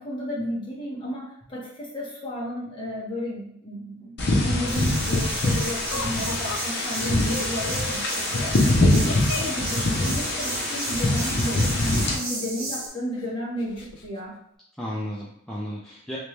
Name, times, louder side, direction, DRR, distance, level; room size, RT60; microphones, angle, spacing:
voice 1, 0.0-4.1 4.4-8.6 9.1-14.4, left 1 dB, 25° left, -5 dB, 1.2 m, -33 dB
sound 1, 4.2-12.1, left 2 dB, 55° left, 0.8 m, -24 dB
sound 2, 4.7-12.9, right 2 dB, 75° right, 1.1 m, -33 dB
Laughter, 5.9-11.0 12.0-12.9 13.2-13.3 13.6-14.1, left 3 dB, 90° left, 0.5 m, -37 dB
voice 2, 6.5-6.9 8.6-9.0 14.8-16.2, equal, 5° left, -6 dB, 0.4 m, -34 dB
3.2 x 3.0 x 3.2 m, 0.73 s
head